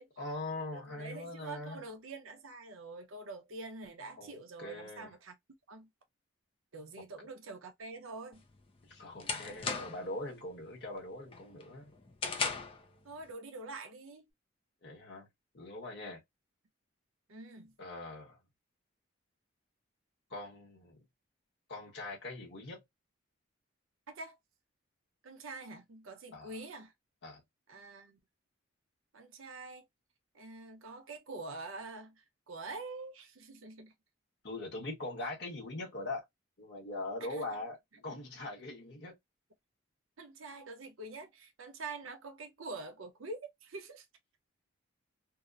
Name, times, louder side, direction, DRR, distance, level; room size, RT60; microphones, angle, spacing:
voice 1, 0.2-1.8 4.2-5.1 8.8-11.9 14.8-15.3 15.5-16.2 17.8-18.4 20.3-21.0 21.7-22.8 26.3-26.5 27.2-27.4 34.4-36.2 36.6-39.2, left 2 dB, 55° left, 1.0 m, -42 dB
voice 2, 0.7-5.3 5.7-5.9 6.7-8.4 13.0-14.3 17.3-17.7 24.1-24.4 25.2-26.9 27.7-28.2 29.1-29.8 30.3-33.9 37.2-37.4 40.2-44.1, right 3 dB, 85° right, 0.7 m, -46 dB
sound 1, 8.4-10.2 10.6-10.9 11.3-12.9, left 4 dB, 25° left, 0.3 m, -37 dB
2.8 x 2.0 x 2.3 m
head